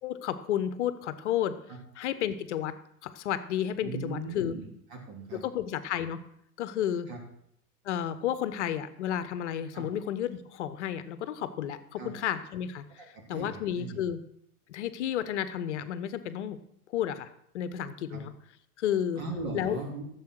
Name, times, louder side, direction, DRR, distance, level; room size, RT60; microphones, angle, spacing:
voice 1, 0.0-1.6 1.9-2.7 3.0-4.5 5.3-6.2 6.6-7.1 7.8-14.2 14.7-16.6 16.9-18.3 18.8-19.2 19.5-19.8, left 10 dB, 50° left, 12 dB, 1.1 m, -32 dB
voice 2, 3.8-5.4 7.1-7.2 9.7-9.8 12.0-12.1 13.0-14.0 18.1-18.2 19.2-20.0, right 3 dB, 40° right, 0 dB, 3.5 m, -39 dB
14.5 x 7.4 x 6.1 m, 0.74 s
figure-of-eight pair, 95°, 45 cm